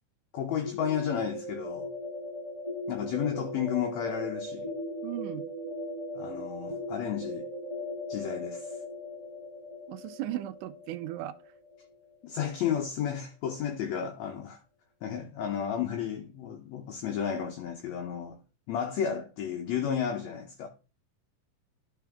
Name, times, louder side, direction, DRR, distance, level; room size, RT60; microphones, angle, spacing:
voice 1, 0.3-1.9 2.9-4.7 6.2-7.5 8.1-8.8 12.2-14.6 15.0-18.4 18.7-20.7, left 8 dB, 70° left, 1.8 m, -32 dB
sound 1, 0.6-12.4, left 1 dB, 20° right, 1.2 m, -38 dB
voice 2, 5.0-5.5 9.9-11.4, right 14 dB, 80° right, 1.9 m, -36 dB
11.5 x 4.5 x 3.5 m
omnidirectional pair, 3.7 m